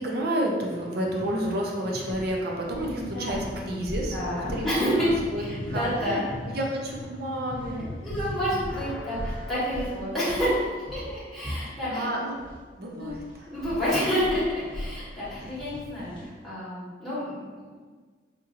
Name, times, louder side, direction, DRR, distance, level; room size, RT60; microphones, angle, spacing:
voice 1, 0.0-4.2 4.5-4.6 5.0-5.4 5.7-7.9 11.6-12.3 12.8-13.5 15.4-15.5, right 1 dB, 55° right, -1 dB, 0.5 m, -30 dB
sound 1, 0.6-9.6, left 1 dB, 65° left, 0.4 m, -40 dB
sound 2, 1.4-1.6 2.0-6.5 6.8-7.0 7.5-12.6 12.9-16.4, equal, 25° left, 1.1 m, -40 dB
voice 2, 4.1-5.1 5.4-6.2 7.8-10.6 10.9-12.1 13.0-13.1 13.5-17.8, equal, ahead, -12 dB, 1.3 m, -29 dB
4.2 x 2.7 x 2.5 m, 1.5 s
head